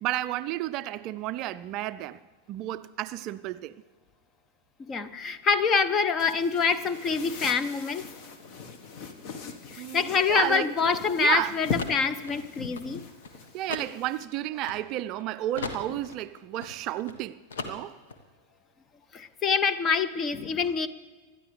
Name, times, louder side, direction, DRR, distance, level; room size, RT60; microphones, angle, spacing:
voice 1, 0.0-2.2 2.5-3.8 9.8-10.7 11.2-11.5 13.5-18.0, right 14 dB, 40° right, 0.4 m, -32 dB
voice 2, 4.9-8.1 9.7-13.0 19.1-20.9, left 5 dB, 25° left, 0.9 m, -26 dB
sound 1, 6.2-14.3, left 5 dB, 40° left, 1.4 m, -40 dB
sound 2, 9.9-15.2 15.5-17.2 17.5-18.2, left 4 dB, 65° left, 1.4 m, -40 dB
26.0 x 12.5 x 3.4 m
figure-of-eight pair, 90°, 0 cm